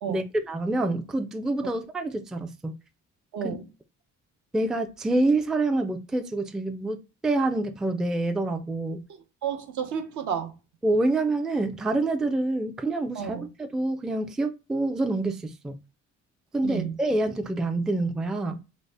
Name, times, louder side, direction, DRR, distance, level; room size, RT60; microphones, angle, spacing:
voice 1, 0.1-2.7 3.4-3.6 4.5-9.0 10.8-15.8 16.5-18.6, right 2 dB, ahead, 0.3 m, -27 dB
voice 2, 3.3-3.7 9.4-10.5 13.1-13.5 16.6-17.0, right 8 dB, 70° right, 0.7 m, -31 dB
4.0 x 2.1 x 3.2 m
cardioid pair, 90°, 30 cm